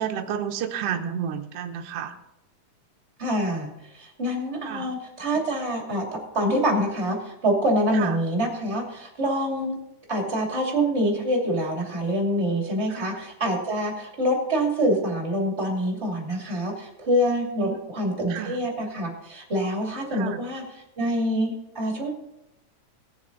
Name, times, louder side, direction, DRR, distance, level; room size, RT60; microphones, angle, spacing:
voice 1, 0.0-2.1 4.6-4.9 8.0-8.1 12.9-13.2 17.6-17.8 18.3-18.6 20.1-20.4, right 8 dB, 70° right, 5 dB, 1.5 m, -31 dB
voice 2, 3.2-6.0 6.3-9.8 10.1-22.1, equal, 20° right, 0 dB, 2.4 m, -26 dB
18.5 x 7.1 x 3.9 m, 0.87 s
omnidirectional pair, 3.8 m